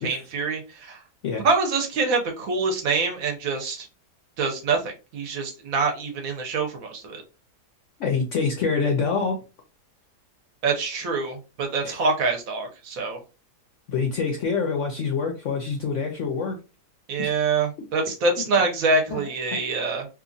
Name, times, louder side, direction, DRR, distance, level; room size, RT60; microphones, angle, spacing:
voice 1, 0.0-1.0 1.4-3.9 4.4-7.2 10.6-13.2 17.1-20.1, right 4 dB, 65° right, 3 dB, 1.0 m, -25 dB
voice 2, 8.0-9.4 11.8-12.0 13.9-16.6 17.2-17.3 19.1-19.2, left 5 dB, 70° left, 2 dB, 0.7 m, -26 dB
2.9 x 2.4 x 2.5 m, 0.30 s
omnidirectional pair, 1.7 m